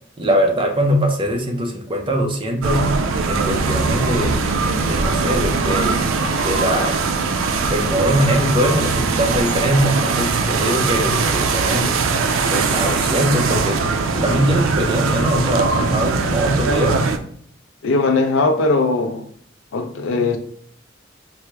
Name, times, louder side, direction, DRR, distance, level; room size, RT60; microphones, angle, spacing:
voice 1, 0.2-2.8 3.3-4.4 4.9-6.0 6.4-7.0 7.7-11.9 12.5-13.8 14.1-17.0, equal, 25° right, 0.5 m, -21 dB
sound 1, 2.6-17.2, right 4 dB, 85° right, 0.4 m, -20 dB
voice 2, 17.8-19.2 19.7-20.4, left 3 dB, 85° left, 0.4 m, -19 dB
4.3 x 2.0 x 3.2 m
head